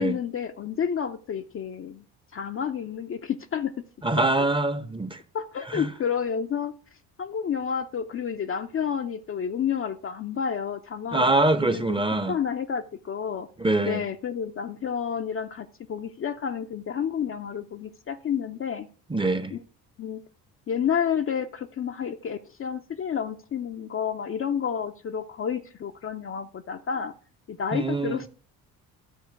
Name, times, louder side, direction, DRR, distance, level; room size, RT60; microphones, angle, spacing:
voice 1, 0.0-2.0 2.3-3.7 4.2-4.3 5.3-6.7 7.2-11.3 11.6-12.0 12.3-13.5 13.8-18.9 19.5-19.6 20.0-20.2 20.7-27.1 27.5-28.3, left 7 dB, 30° left, 0.5 m, -30 dB
voice 2, 4.0-5.2 5.7-5.9 11.1-12.4 13.6-14.0 19.1-19.5 27.7-28.2, right 2 dB, 10° right, 0.7 m, -24 dB
12.0 x 4.3 x 4.7 m
hypercardioid pair, 50°, 47 cm